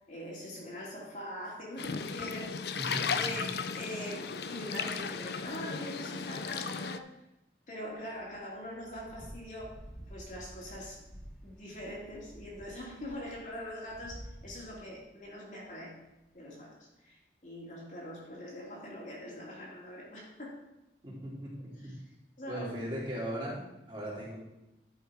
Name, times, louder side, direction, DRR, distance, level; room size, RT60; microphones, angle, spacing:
voice 1, 0.0-2.8 3.2-3.4 3.7-7.1 7.7-9.8 10.1-11.0 11.4-16.0 16.3-20.6 21.8-21.9 22.4-22.7, equal, 45° left, -4 dB, 2.5 m, -43 dB
sound 1, 1.8-7.0, left 5 dB, 65° left, 0.5 m, -35 dB
voice 2, 2.8-3.2 21.0-21.9 22.5-24.4, equal, 25° right, -7 dB, 3.5 m, -38 dB
sound 2, 7.9-15.2 15.5-15.6 16.1-16.2, equal, 5° left, 1.3 m, -51 dB
11.5 x 5.6 x 4.8 m, 0.93 s
head